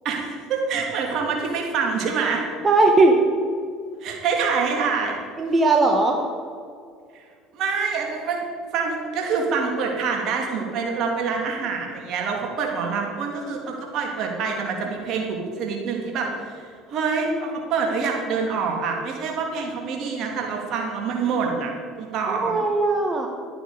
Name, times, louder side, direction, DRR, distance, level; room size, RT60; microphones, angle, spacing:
voice 1, 0.0-2.4 4.0-5.2 7.1-7.2 7.5-8.4 8.7-21.7 22.0-22.6, right 5 dB, 55° right, 1 dB, 2.8 m, -26 dB
voice 2, 2.6-3.2 5.4-6.2 22.3-23.3, right 3 dB, 25° right, 2 dB, 1.4 m, -18 dB
12.0 x 10.0 x 5.0 m, 2.2 s
hypercardioid pair, 70°, 0 cm